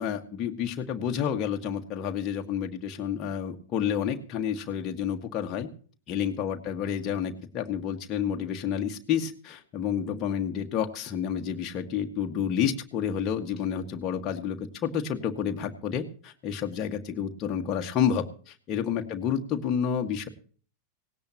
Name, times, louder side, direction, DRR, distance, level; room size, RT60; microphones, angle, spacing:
voice 1, 0.0-5.7 6.1-20.3, left 8 dB, 30° left, 2 dB, 1.7 m, -30 dB
18.0 x 18.0 x 3.0 m, 0.42 s
figure-of-eight pair, 90°, 0 cm